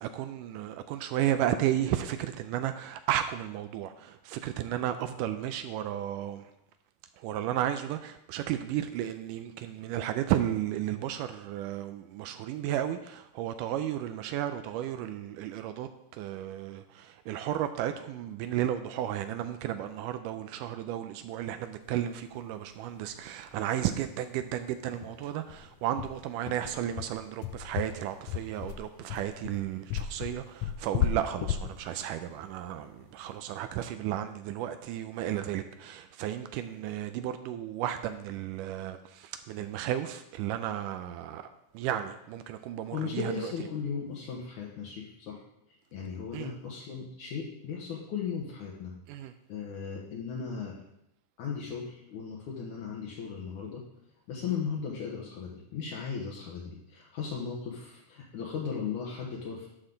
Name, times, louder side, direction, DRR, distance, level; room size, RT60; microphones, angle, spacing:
voice 1, 0.0-6.4 7.2-41.4 41.7-43.5 46.3-46.5 49.1-49.3, right 11 dB, 85° right, 9 dB, 2.1 m, -33 dB
sound 1, 23.1-23.2 23.5-23.6 23.9-24.1 24.4-24.5 25.0-33.4, left 10 dB, 90° left, 1.5 m, -34 dB
voice 2, 42.9-45.4 45.9-48.9 49.5-50.7 51.4-53.8 54.3-59.7, left 6 dB, 70° left, -3 dB, 2.5 m, -36 dB
11.5 x 6.4 x 3.9 m, 0.82 s
omnidirectional pair, 3.7 m